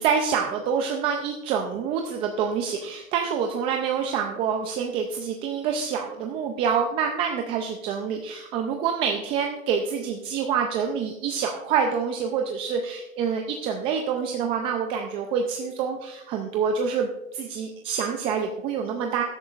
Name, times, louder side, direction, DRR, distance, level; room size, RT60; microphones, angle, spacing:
voice 1, 0.0-19.2, right 6 dB, 15° right, 3 dB, 0.3 m, -27 dB
14.5 x 12.0 x 2.4 m, 0.99 s
hypercardioid pair, 120°, 42 cm